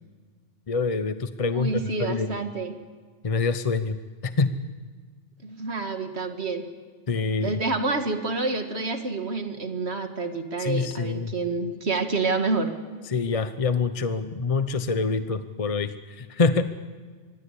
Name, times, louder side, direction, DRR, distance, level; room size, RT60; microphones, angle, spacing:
voice 1, 0.7-2.3 3.2-3.9 4.2-4.5 7.1-7.6 10.6-11.3 13.1-16.6, left 4 dB, 35° left, 11 dB, 0.8 m, -26 dB
voice 2, 1.5-2.7 5.4-6.6 7.4-12.7, right 3 dB, 60° right, 6 dB, 2.2 m, -28 dB
25.0 x 20.0 x 8.4 m, 1.6 s
omnidirectional pair, 1.2 m